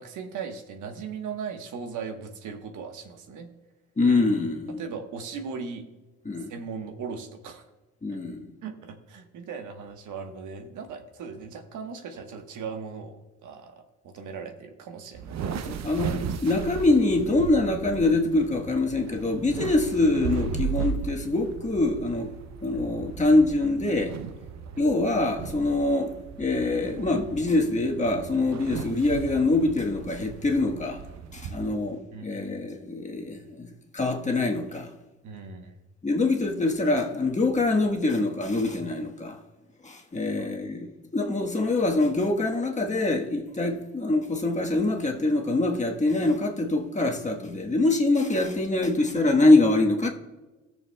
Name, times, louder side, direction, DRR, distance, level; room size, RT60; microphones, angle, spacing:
voice 1, 0.0-3.5 4.7-5.9 6.5-7.6 8.6-13.7 14.0-15.6 16.3-16.4 31.5-32.6 35.2-35.7 40.4-40.6, right 5 dB, 80° right, 1.2 m, -38 dB
voice 2, 4.0-4.8 6.2-6.5 8.0-8.4 15.6-22.3 22.6-24.1 24.8-26.1 26.4-31.0 31.3-33.7 33.9-34.9 36.0-39.4 39.8-40.9 41.1-50.1, left 2 dB, 25° left, 1.3 m, -24 dB
sound 1, 15.1-31.7, right 6 dB, 60° right, 0.7 m, -36 dB
16.5 x 6.8 x 2.2 m
cardioid pair, 90°, 30 cm